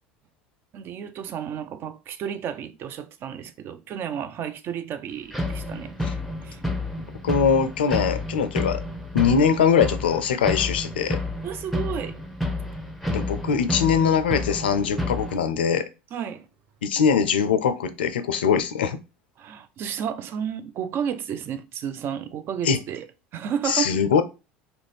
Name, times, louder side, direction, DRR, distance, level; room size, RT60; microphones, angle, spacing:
voice 1, 0.7-6.0 6.4-6.6 11.4-12.2 16.1-16.5 19.4-23.1 23.3-24.0, right 8 dB, 45° right, 0.4 m, -32 dB
sound 1, 5.3-15.4, left 2 dB, ahead, 0.6 m, -30 dB
voice 2, 7.2-8.8 9.1-11.2 13.1-15.8 16.8-19.0 22.6-22.8 23.6-24.2, left 7 dB, 80° left, 0.4 m, -22 dB
2.5 x 2.0 x 3.2 m
hypercardioid pair, 75°, 5 cm